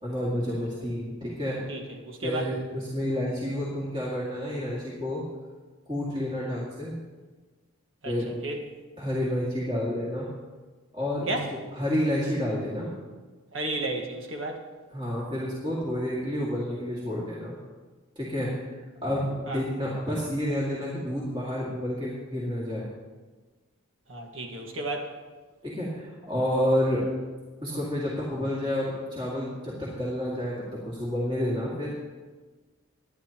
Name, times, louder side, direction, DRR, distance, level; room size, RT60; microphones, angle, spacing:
voice 1, 0.0-1.6 2.2-5.2 5.9-7.0 8.1-8.3 9.0-10.3 10.9-11.4 11.7-12.9 14.9-17.5 18.2-22.9 25.6-27.0 27.6-31.9, equal, 25° right, -6 dB, 2.2 m, -29 dB
voice 2, 1.7-2.5 8.0-8.6 11.3-11.5 13.5-14.7 19.5-19.6 24.1-25.1, right 2 dB, 65° right, 2 dB, 1.6 m, -33 dB
19.0 x 10.5 x 3.0 m, 1.3 s
head